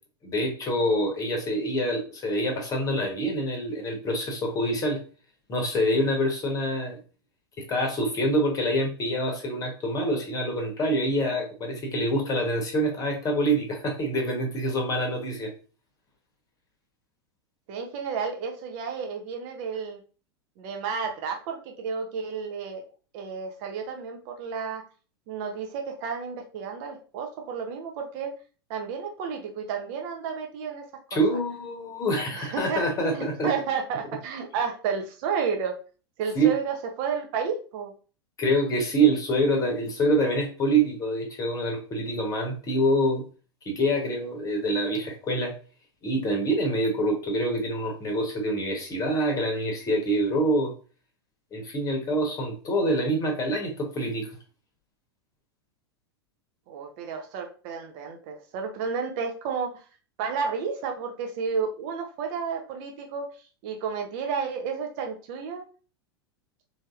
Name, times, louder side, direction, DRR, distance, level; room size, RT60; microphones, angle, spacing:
voice 1, 0.2-5.0 5.5-7.0 7.7-15.5 31.1-33.5 36.3-36.5 38.4-43.2 43.6-45.5 46.0-50.7 51.5-54.3, right 1 dB, 25° left, 1 dB, 0.9 m, -26 dB
voice 2, 17.7-20.0 20.6-22.8 23.1-24.8 25.3-28.3 28.7-30.9 31.1-31.4 32.3-32.8 33.1-35.7 36.2-37.9 56.7-59.8 60.2-63.3 63.6-65.6, right 6 dB, 50° right, 3 dB, 0.7 m, -31 dB
3.2 x 2.7 x 2.3 m, 0.37 s
figure-of-eight pair, 95°, 14 cm